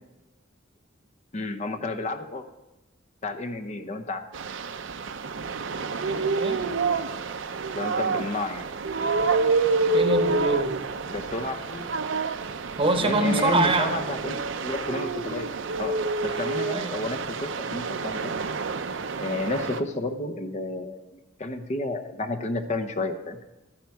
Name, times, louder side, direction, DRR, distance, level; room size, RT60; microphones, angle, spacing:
voice 1, 1.3-2.4 3.2-4.2 7.7-8.7 11.1-12.0 12.9-18.4 19.2-21.1 21.4-23.4, left 2 dB, 35° left, 5 dB, 0.7 m, -31 dB
sound 1, 4.3-19.8, right 4 dB, 70° right, 0.6 m, -28 dB
voice 2, 6.0-6.6 9.9-10.8 12.8-14.0 16.7-17.1, right 2 dB, 30° right, 7 dB, 0.9 m, -25 dB
13.0 x 8.7 x 4.7 m, 1.0 s
head